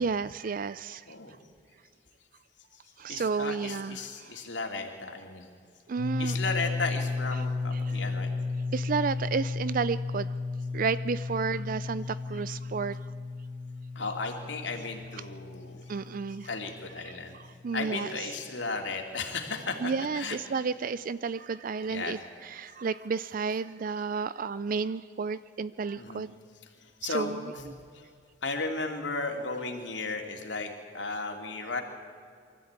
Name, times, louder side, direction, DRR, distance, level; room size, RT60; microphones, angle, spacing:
voice 1, 0.0-1.0 3.0-4.4 5.9-6.4 7.4-7.5 7.8-7.9 8.7-10.3 10.7-13.0 15.9-16.5 17.0-18.1 19.8-26.3 27.0-27.5, right 5 dB, 50° right, 16 dB, 0.4 m, -32 dB
voice 2, 3.1-5.5 6.2-8.3 13.9-15.8 16.4-17.4 17.7-20.4 20.8-20.9 21.9-22.2 26.0-26.3 26.8-27.7 27.9-28.0 28.4-31.8, left 3 dB, 85° left, 3 dB, 2.8 m, -35 dB
sound 1, 6.0-17.7, left 3 dB, 80° right, 2.9 m, -34 dB
24.0 x 14.0 x 8.9 m, 2.2 s
head